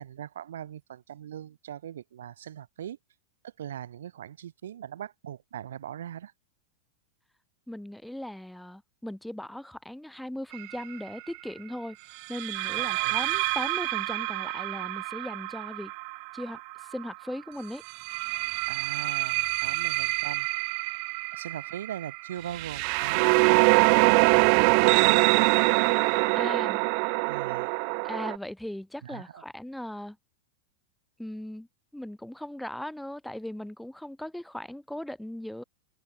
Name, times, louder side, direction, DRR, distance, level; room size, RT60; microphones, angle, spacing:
voice 1, 0.0-3.0 3.4-6.3 12.8-13.2 18.7-20.5 21.3-26.2 27.2-27.7 29.0-29.4, right 10 dB, 60° right, 6.9 m, -40 dB
voice 2, 7.7-12.0 12.3-15.9 16.3-17.8 26.3-26.8 28.0-30.2 31.2-31.7 31.9-35.6, left 1 dB, ahead, 2.1 m, -38 dB
sound 1, 10.5-10.8 12.3-17.1 17.9-28.4, right 40 dB or more, 45° right, 0.4 m, -25 dB
figure-of-eight pair, 90°, 0 cm